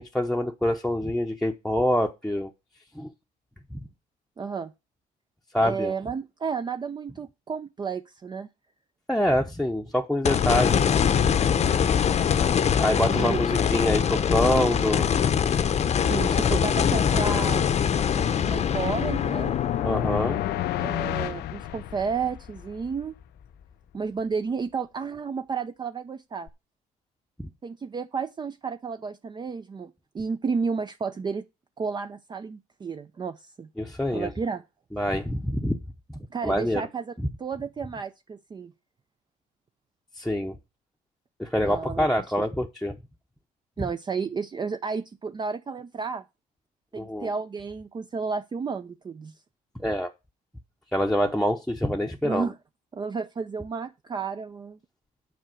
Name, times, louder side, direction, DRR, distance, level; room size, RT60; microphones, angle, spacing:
voice 1, 0.0-2.5 2.9-3.1 3.7-3.8 5.5-5.9 9.1-11.3 12.8-15.1 19.8-20.4 27.4-27.5 33.8-34.3 34.9-35.8 36.1-36.8 37.2-37.3 40.2-40.5 41.4-43.0 47.0-47.3 49.8-50.1 50.9-52.5, equal, ahead, 0.8 m, -26 dB
voice 2, 4.4-4.7 5.6-8.5 13.0-13.4 13.8-14.1 16.0-17.7 18.4-19.6 20.8-23.1 23.9-26.5 27.6-31.4 31.8-33.7 34.1-34.6 36.3-37.1 37.4-38.7 41.6-42.1 42.4-42.5 43.8-46.2 46.9-49.3 52.2-52.6 52.9-54.8, right 5 dB, 25° right, 0.5 m, -32 dB
sound 1, 10.2-22.6 23.0-23.1 26.5-26.6, left 8 dB, 40° left, 0.8 m, -24 dB
sound 2, 17.6-22.5, left 16 dB, 75° left, 0.6 m, -32 dB
9.4 x 4.7 x 7.7 m
cardioid pair, 110°, 17 cm